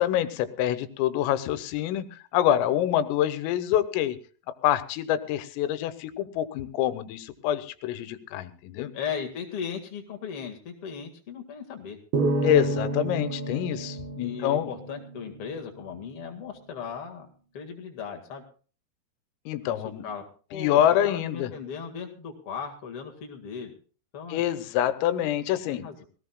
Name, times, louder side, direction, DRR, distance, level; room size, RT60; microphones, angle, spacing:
voice 1, 0.0-4.2 4.5-8.9 12.4-14.7 19.5-20.1 20.5-21.5 24.3-25.8, left 11 dB, 85° left, 12 dB, 3.6 m, -26 dB
voice 2, 8.9-12.0 14.2-17.3 17.5-18.4 19.8-20.2 20.5-23.8 24.1-24.4 25.7-26.0, left 7 dB, 60° left, 3 dB, 1.5 m, -37 dB
sound 1, 12.1-15.5, right 2 dB, 65° right, 4.4 m, -30 dB
21.5 x 18.5 x 2.3 m, 0.39 s
omnidirectional pair, 5.9 m